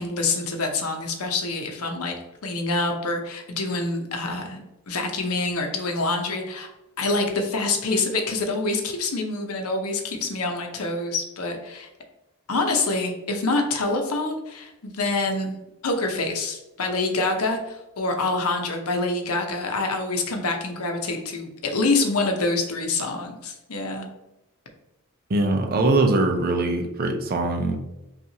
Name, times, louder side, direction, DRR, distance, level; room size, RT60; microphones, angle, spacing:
voice 1, 0.0-2.2 2.4-6.7 7.0-11.9 12.5-15.6 15.8-24.1, left 3 dB, 75° left, 3 dB, 0.7 m, -26 dB
voice 2, 25.3-27.8, right 2 dB, 45° right, 4 dB, 0.5 m, -22 dB
5.6 x 2.4 x 2.8 m, 0.93 s
head